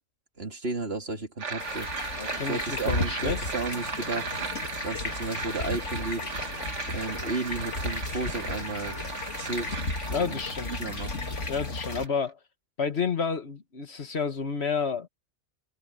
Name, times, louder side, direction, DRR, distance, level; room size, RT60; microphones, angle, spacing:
voice 1, 0.4-1.9 2.3-4.3 4.8-6.3 6.9-9.0 9.4-9.8 10.2-10.4 10.7-11.1, right 3 dB, 60° right, 3.3 m, -33 dB
sound 1, 1.4-12.3, right 5 dB, 85° right, 1.8 m, -37 dB
sound 2, 1.6-12.1, left 2 dB, 90° left, 2.9 m, -34 dB
voice 2, 2.2-3.4 10.1-10.8 11.5-12.4 12.8-15.1, left 5 dB, 65° left, 1.8 m, -30 dB
omnidirectional pair, 1.2 m